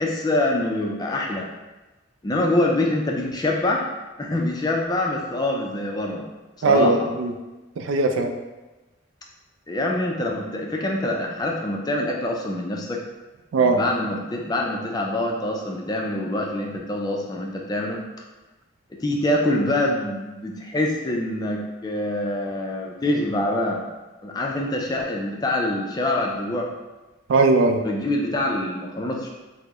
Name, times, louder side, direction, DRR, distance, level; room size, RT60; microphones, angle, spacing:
voice 1, 0.0-1.5 2.2-3.9 4.2-6.3 6.6-7.1 9.7-13.0 13.6-18.0 19.0-23.8 24.2-26.7 27.8-29.3, left 1 dB, 20° left, 0 dB, 0.3 m, -25 dB
voice 2, 6.6-7.3 7.8-8.3 13.5-13.8 27.3-27.8, right 3 dB, 85° right, 5 dB, 0.4 m, -19 dB
4.3 x 2.0 x 2.9 m, 1.1 s
head